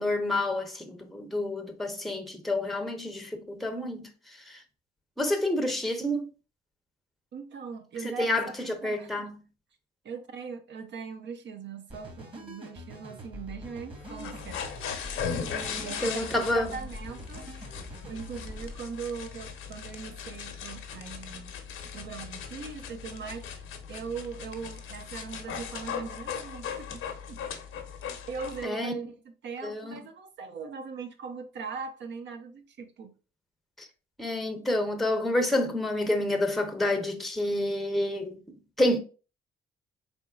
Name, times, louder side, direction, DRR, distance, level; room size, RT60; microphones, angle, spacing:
voice 1, 0.0-4.6 5.2-6.3 8.0-9.3 15.3-16.8 28.6-28.9 29.6-29.9 33.8-33.9 34.2-39.0, left 1 dB, ahead, 0.7 m, -29 dB
voice 2, 7.3-9.3 10.0-14.6 15.8-17.5 18.0-21.5 21.9-27.0 27.3-27.4 28.3-33.1, right 5 dB, 60° right, 0.8 m, -40 dB
sound 1, 11.9-18.8, equal, 25° right, 1.4 m, -44 dB
sound 2, 14.0-28.6, left 7 dB, 75° left, 0.8 m, -38 dB
3.9 x 3.5 x 2.4 m
supercardioid pair, 75°, 21 cm